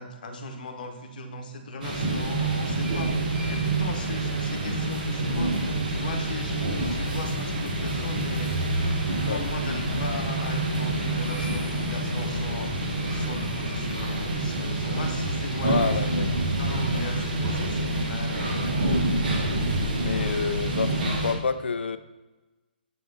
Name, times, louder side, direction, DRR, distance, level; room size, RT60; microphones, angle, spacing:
voice 1, 0.0-8.5 9.1-12.7 13.1-16.3 16.6-18.8, left 2 dB, 55° left, 4 dB, 0.9 m, -38 dB
sound 1, 1.8-21.3, right 2 dB, 50° right, 1.2 m, -27 dB
voice 2, 15.6-16.2 20.0-22.0, left 5 dB, 85° left, 12 dB, 0.4 m, -28 dB
7.6 x 3.5 x 3.8 m, 1.2 s
hypercardioid pair, 155°, 6 cm